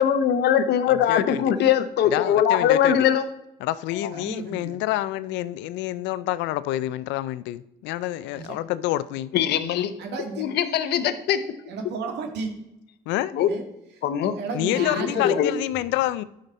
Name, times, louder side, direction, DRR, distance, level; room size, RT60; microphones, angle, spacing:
voice 1, 0.0-3.3 9.3-9.9 10.4-11.4 13.3-13.5 14.0-14.3 14.8-15.5, left 9 dB, 70° left, 0.9 m, -21 dB
voice 2, 0.9-1.4 2.1-3.0 3.6-9.3 13.1-13.3 14.5-16.2, left 15 dB, 90° left, 0.5 m, -28 dB
voice 3, 4.1-4.8 8.3-8.6 10.0-10.4 11.7-12.7 13.5-13.6 14.4-15.4, right 4 dB, 70° right, 1.7 m, -33 dB
11.5 x 5.2 x 4.1 m
cardioid pair, 105°, 18 cm